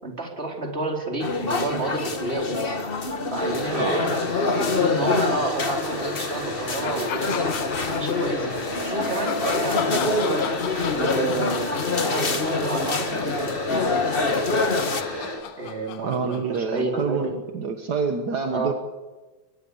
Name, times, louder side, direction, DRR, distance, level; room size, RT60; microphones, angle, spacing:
voice 1, 0.0-2.6 3.3-7.5 7.8-8.5 8.8-10.5 10.9-11.8 12.0-13.5 14.2-14.5 15.6-17.3 18.5-18.7, right 2 dB, 20° right, 1 dB, 4.7 m, -30 dB
sound 1, 1.2-15.0, left 3 dB, 35° left, 0.9 m, -26 dB
sound 2, 3.3-15.4, left 2 dB, 55° left, 7.6 m, -33 dB
voice 2, 3.7-4.1 16.0-18.7, right 5 dB, 45° right, 5 dB, 1.5 m, -27 dB
sound 3, 6.8-8.5 9.0-17.3, left 10 dB, 80° left, 2.7 m, -35 dB
24.0 x 20.0 x 7.1 m, 1.2 s
omnidirectional pair, 3.5 m